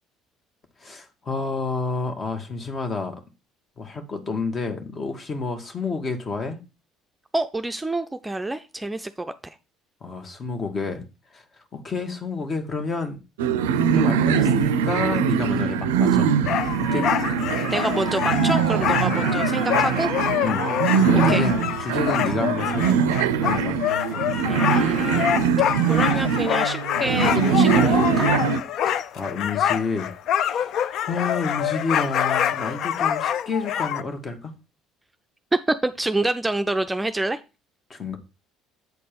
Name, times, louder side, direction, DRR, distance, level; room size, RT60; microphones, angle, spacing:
voice 1, 0.8-3.1 3.8-6.6 10.0-11.0 11.3-11.4 11.7-13.2 13.8-16.3 16.8-17.1 20.4-20.6 21.0-23.0 23.3-23.8 28.8-34.5 37.9-38.2, left 4 dB, 35° left, 1.6 m, -29 dB
voice 2, 7.3-9.6 17.7-20.1 21.3-21.4 24.5-25.5 25.9-28.3 35.7-37.4, right 2 dB, 15° right, 0.5 m, -27 dB
sound 1, 13.4-28.6, right 7 dB, 75° right, 0.4 m, -22 dB
sound 2, 16.4-34.0, left 10 dB, 55° left, 0.4 m, -26 dB
8.0 x 4.3 x 5.2 m
hypercardioid pair, 55°, 0 cm